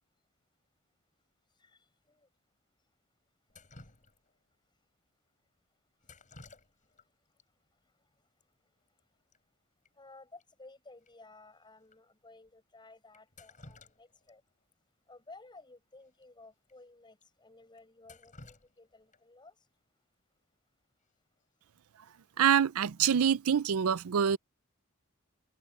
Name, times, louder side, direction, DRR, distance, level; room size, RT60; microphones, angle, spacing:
Drip, 3.5-4.5 6.0-7.1 7.4-7.5 8.4-8.5 8.8-9.0 9.3-9.4 9.9-10.0 10.4-10.5 11.1-11.2 11.9-12.0 13.1-14.3 14.7-14.8 16.1-16.2 16.6-16.7 17.2-17.3 17.8-19.4 21.4-21.7 22.1-22.5, left 2 dB, 35° left, 5.5 m, -55 dB
voice 1, 10.0-14.4 15.1-19.5, left 3 dB, 20° left, 6.1 m, -55 dB
voice 2, 22.4-24.4, right 8 dB, 90° right, 0.5 m, -26 dB
head